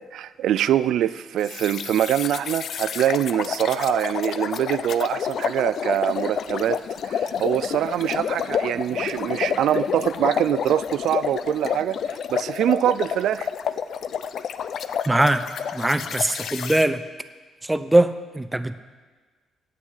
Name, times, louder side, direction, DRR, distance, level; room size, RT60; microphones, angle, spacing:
voice 1, 0.0-13.5, right 11 dB, 75° right, 16 dB, 0.3 m, -24 dB
sound 1, 1.4-16.9, left 7 dB, 65° left, 0.5 m, -29 dB
voice 2, 15.1-15.4 15.7-17.0 17.7-18.8, right 1 dB, 10° right, 11 dB, 0.6 m, -21 dB
9.6 x 8.3 x 7.9 m, 1.4 s
cardioid pair, 90°, 0 cm